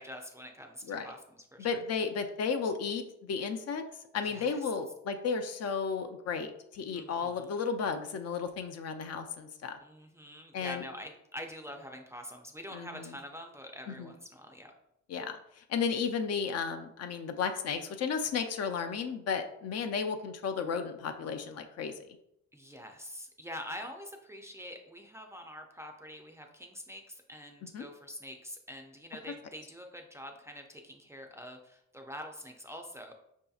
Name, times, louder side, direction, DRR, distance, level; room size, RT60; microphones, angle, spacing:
voice 1, 0.0-1.8 4.2-4.7 6.9-7.5 9.8-14.7 22.5-33.1, equal, 10° right, 3 dB, 0.4 m, -45 dB
voice 2, 1.6-3.8 4.1-6.5 6.7-9.8 10.5-10.8 12.7-13.1 13.9-14.1 15.1-21.9 27.7-27.9, left 5 dB, 55° left, 7 dB, 0.5 m, -33 dB
4.9 x 2.7 x 2.3 m, 0.77 s
cardioid pair, 90°, 30 cm